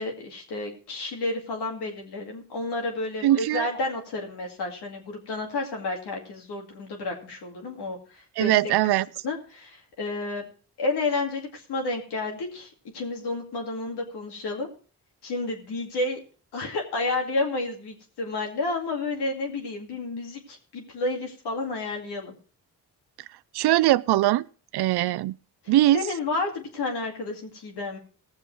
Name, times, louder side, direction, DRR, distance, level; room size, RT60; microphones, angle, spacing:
voice 1, 0.0-8.6 9.2-10.5 10.8-14.7 15.2-16.2 16.5-22.4 25.9-28.0, left 2 dB, 90° left, 1 dB, 2.4 m, -31 dB
voice 2, 3.2-3.7 8.4-9.1 23.5-24.5 24.7-25.4 25.7-26.0, right 15 dB, 80° right, 20 dB, 0.5 m, -21 dB
17.0 x 7.2 x 4.6 m, 0.40 s
supercardioid pair, 50°, 39 cm